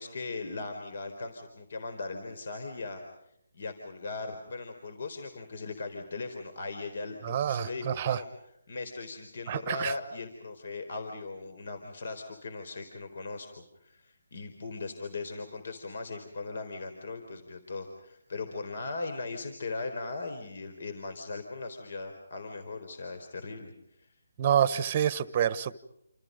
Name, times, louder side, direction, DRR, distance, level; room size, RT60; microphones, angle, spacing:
voice 1, 0.0-3.0 3.5-8.3 8.7-23.7 24.0-24.1, left 3 dB, 55° left, 7 dB, 4.2 m, -39 dB
voice 2, 7.2-8.2 9.5-9.9 24.4-25.7, right 9 dB, 25° right, 16 dB, 1.2 m, -27 dB
29.0 x 28.5 x 5.3 m, 0.75 s
hypercardioid pair, 170°, 0 cm